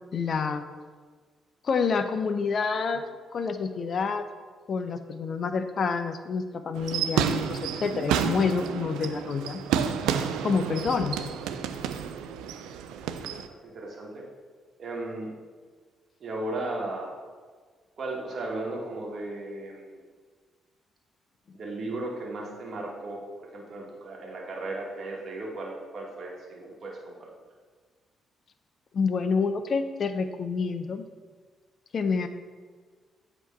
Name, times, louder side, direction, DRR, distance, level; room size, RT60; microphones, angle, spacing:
voice 1, 0.1-0.6 1.6-3.0 3.3-4.3 4.7-9.6 10.4-11.2 28.9-31.0 31.9-32.3, left 5 dB, 50° left, 9 dB, 0.5 m, -28 dB
sound 1, 6.8-13.5, right 8 dB, 75° right, 0.3 m, -30 dB
voice 2, 12.9-13.3 13.6-14.2 14.8-15.3 16.2-17.2 18.0-20.0 21.5-27.3, right 2 dB, 50° right, -1 dB, 1.3 m, -36 dB
8.1 x 3.0 x 4.4 m, 1.5 s
hypercardioid pair, 45°, 0 cm